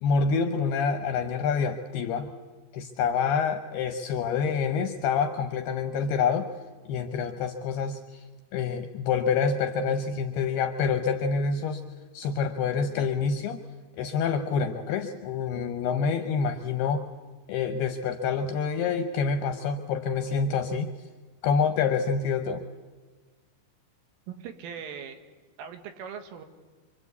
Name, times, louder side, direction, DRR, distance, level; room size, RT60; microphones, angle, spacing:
voice 1, 0.0-2.3 2.7-6.5 6.9-8.2 8.5-11.8 12.1-13.6 14.0-17.0 17.5-20.9 21.4-22.6, left 5 dB, 75° left, 7 dB, 2.4 m, -27 dB
voice 2, 24.3-25.2 25.6-26.5, right 7 dB, 85° right, 7 dB, 4.3 m, -40 dB
26.0 x 24.5 x 8.3 m, 1.3 s
omnidirectional pair, 5.6 m